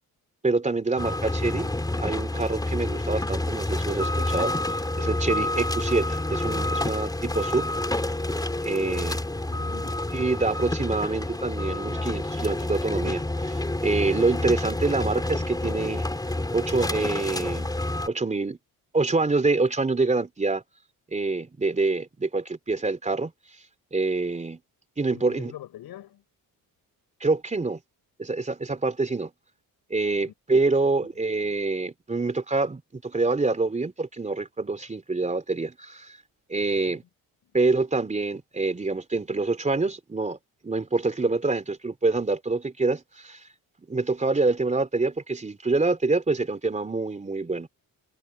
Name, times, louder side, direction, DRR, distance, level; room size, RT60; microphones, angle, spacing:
voice 1, 0.4-1.7 2.0-7.7 8.6-9.2 10.1-16.0 16.5-17.7 18.0-18.6 18.9-20.6 21.1-23.3 23.9-24.6 25.0-25.5 27.2-27.8 28.2-29.3 29.9-36.2 36.5-37.0 37.5-40.4 40.6-43.4 43.9-47.7, right 3 dB, 20° right, 3.4 m, -26 dB
sound 1, 1.0-18.1, left 1 dB, 10° left, 4.0 m, -28 dB
voice 2, 9.5-10.2 25.1-26.2 30.2-30.3 30.8-31.1 36.8-37.0, left 12 dB, 80° left, 6.3 m, -44 dB
cardioid pair, 130°, 37 cm